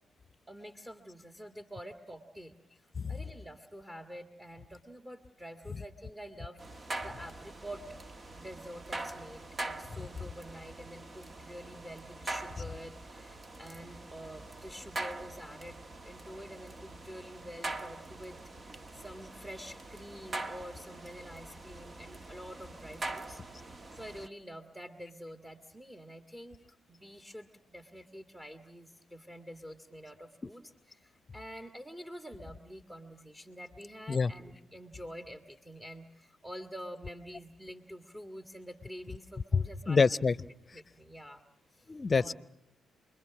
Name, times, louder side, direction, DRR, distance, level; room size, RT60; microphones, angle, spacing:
voice 1, 0.5-7.9 8.3-18.4 18.9-23.4 23.9-26.6 26.9-40.0 40.7-41.4 41.7-41.9 42.2-42.3, equal, 10° right, 7 dB, 1.9 m, -47 dB
sound 1, 6.6-24.3, right 2 dB, 40° right, 1.4 m, -43 dB
voice 2, 39.9-40.3 41.9-42.3, left 4 dB, 40° left, 19 dB, 0.8 m, -26 dB
28.0 x 22.0 x 6.1 m, 0.84 s
supercardioid pair, 50°, 0 cm